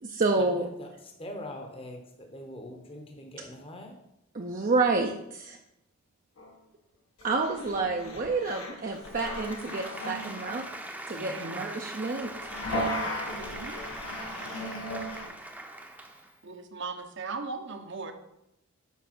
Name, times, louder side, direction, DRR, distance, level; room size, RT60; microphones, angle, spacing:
voice 1, 0.0-0.7 4.3-5.6 7.2-10.7 11.1-12.3, right 3 dB, 40° right, 1 dB, 0.6 m, -29 dB
voice 2, 0.6-0.9 1.2-2.0 2.3-3.9 11.1-11.5, left 1 dB, 25° left, 3 dB, 0.9 m, -42 dB
sound 1, 6.4-6.5 7.2-10.6 12.2-15.3, left 1 dB, 85° left, 1.6 m, -36 dB
Applause, 9.0-16.4, right 1 dB, 10° right, 0.7 m, -42 dB
voice 3, 11.3-11.6 12.7-13.0 13.3-13.8 16.4-18.1, right 4 dB, 60° right, 7 dB, 0.9 m, -39 dB
7.3 x 4.9 x 5.9 m, 0.84 s
head